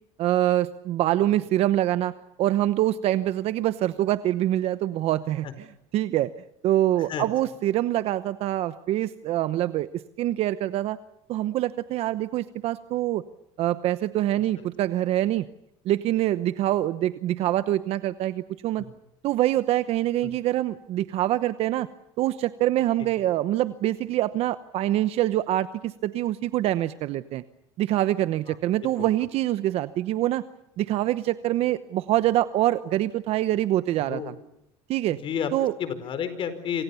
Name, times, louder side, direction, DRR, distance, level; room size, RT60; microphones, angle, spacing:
voice 1, 0.2-2.1 2.4-5.5 5.9-6.3 6.6-11.0 11.3-13.2 13.6-15.5 15.8-18.8 19.2-21.9 22.2-27.4 27.8-30.4 30.8-34.3 34.9-35.2 35.5-35.7, right 14 dB, 55° right, 13 dB, 0.9 m, -25 dB
voice 2, 34.0-34.3 35.1-35.5 35.8-36.8, left 8 dB, 45° left, 12 dB, 4.6 m, -31 dB
27.5 x 27.0 x 7.1 m, 0.81 s
supercardioid pair, 120°, 12 cm